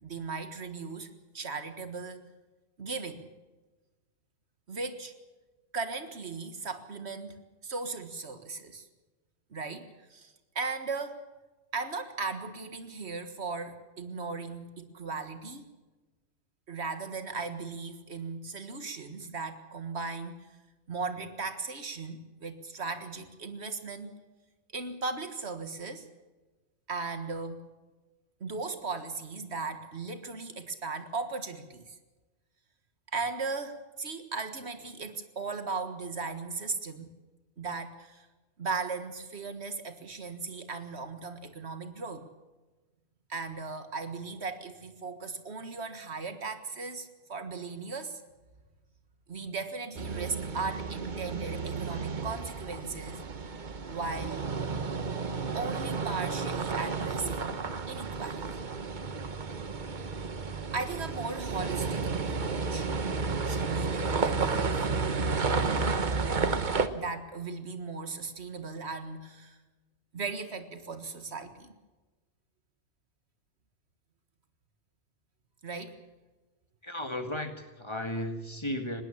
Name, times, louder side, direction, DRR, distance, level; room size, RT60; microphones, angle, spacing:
voice 1, 0.0-2.3 2.8-3.3 4.7-5.1 5.7-8.9 9.5-11.2 11.7-15.6 16.7-20.4 20.9-24.1 24.7-26.1 26.9-27.6 28.4-32.0 33.1-37.1 37.6-38.3 38.6-42.3 43.3-48.2 49.3-53.2 53.9-54.5 55.5-57.6 57.9-58.6 60.7-62.9 63.5-64.9 65.5-66.4 66.9-69.6 70.1-71.7 75.6-76.0, right 4 dB, 80° right, 9 dB, 1.9 m, -37 dB
sound 1, 50.0-66.9, right 4 dB, 45° right, 1.2 m, -32 dB
voice 2, 76.8-79.0, left 1 dB, 25° left, 6 dB, 2.0 m, -35 dB
20.5 x 18.0 x 7.3 m, 1.2 s
omnidirectional pair, 1.1 m